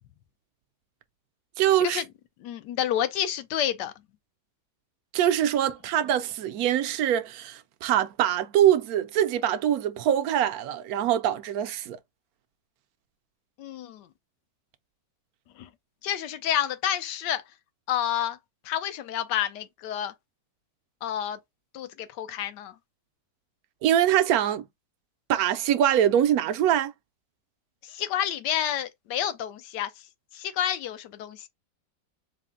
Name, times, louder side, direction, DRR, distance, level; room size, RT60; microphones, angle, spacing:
voice 1, 1.6-2.0 5.1-12.0 23.8-24.6 25.3-26.9, right 10 dB, 70° right, 0.9 m, -23 dB
voice 2, 2.4-3.9 13.6-14.1 15.6-15.7 16.0-17.4 17.9-18.4 18.6-20.1 21.0-21.4 21.7-22.7 27.8-29.9 30.3-31.5, left 10 dB, 80° left, 1.2 m, -29 dB
4.1 x 2.1 x 3.6 m
omnidirectional pair, 1.9 m